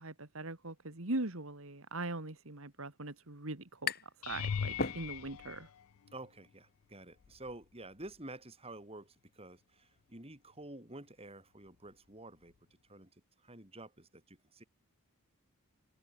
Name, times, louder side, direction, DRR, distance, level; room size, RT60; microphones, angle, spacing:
voice 1, 0.0-3.9 4.3-5.7, right 2 dB, 65° right, 2.2 m, -41 dB
sound 1, 2.8-2.9 3.0-4.3 4.6-5.5, left 4 dB, 45° left, 2.4 m, -38 dB
sound 2, 4.2-6.5 7.2-7.6 8.0-8.2 12.5-12.6, left 7 dB, 75° left, 0.4 m, -40 dB
voice 2, 6.1-12.5 12.9-13.1 13.4-14.6, right 2 dB, 25° right, 5.2 m, -50 dB
head